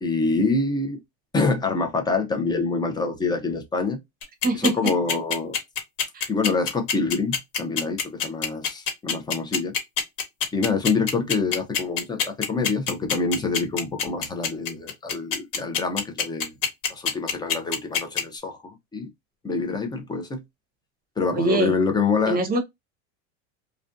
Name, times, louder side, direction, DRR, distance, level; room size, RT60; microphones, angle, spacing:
voice 1, 0.0-1.0 1.3-4.0 4.5-5.6 6.3-9.7 10.5-16.6 16.9-19.1 19.4-20.4 21.2-22.4, left 4 dB, 10° left, 0.4 m, -26 dB
sound 1, 4.2-18.2, left 7 dB, 75° left, 1.2 m, -24 dB
voice 2, 4.4-4.9 6.1-6.3 21.3-21.7 22.3-22.6, right 3 dB, 25° right, 0.7 m, -23 dB
2.4 x 2.2 x 2.5 m
supercardioid pair, 130°, 39 cm